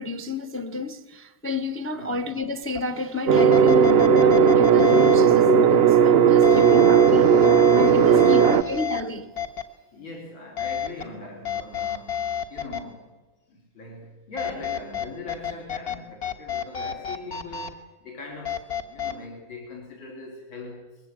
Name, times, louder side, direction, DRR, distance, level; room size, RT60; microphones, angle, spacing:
voice 1, 0.0-7.3 7.7-9.3, left 4 dB, 10° left, 0.6 m, -31 dB
sound 1, 2.7-2.8 3.4-5.2 6.4-9.0 9.4-9.6 10.6-11.0 11.4-12.8 14.4-16.0 16.2-17.7 18.4-19.1, left 9 dB, 50° left, 1.9 m, -30 dB
sound 2, 3.3-8.6, right 7 dB, 85° right, 0.5 m, -16 dB
voice 2, 7.9-8.7 9.7-13.1 13.5-20.9, left 2 dB, 75° left, 4.3 m, -41 dB
21.5 x 16.0 x 8.9 m
omnidirectional pair, 2.2 m